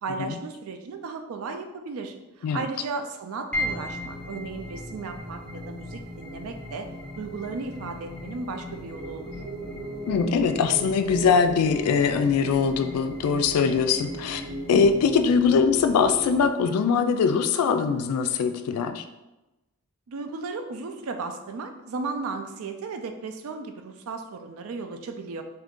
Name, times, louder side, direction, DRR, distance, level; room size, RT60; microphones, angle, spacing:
voice 1, 0.0-6.9 7.2-9.3 20.1-25.4, right 4 dB, 75° right, 6 dB, 0.4 m, -35 dB
sound 1, 3.5-18.0, left 1 dB, 5° left, 0.4 m, -42 dB
sound 2, 3.5-16.5, equal, 30° right, 0.7 m, -38 dB
voice 2, 10.1-14.4 14.7-19.0, left 5 dB, 90° left, 8 dB, 0.3 m, -22 dB
2.7 x 2.5 x 3.6 m, 1.0 s
head